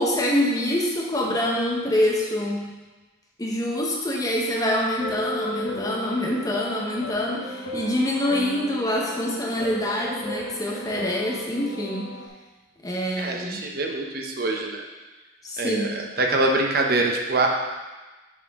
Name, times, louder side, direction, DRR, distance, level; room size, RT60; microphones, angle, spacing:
voice 1, 0.0-2.7 3.4-12.2 12.8-13.6 15.4-16.0, left 1 dB, 20° left, -2 dB, 0.8 m, -25 dB
sound 1, 5.0-12.3, left 1 dB, 85° left, 0.9 m, -35 dB
voice 2, 13.2-14.8 15.6-15.9 16.2-17.5, right 2 dB, 50° right, 1 dB, 0.7 m, -24 dB
6.2 x 5.9 x 3.5 m, 1.2 s
head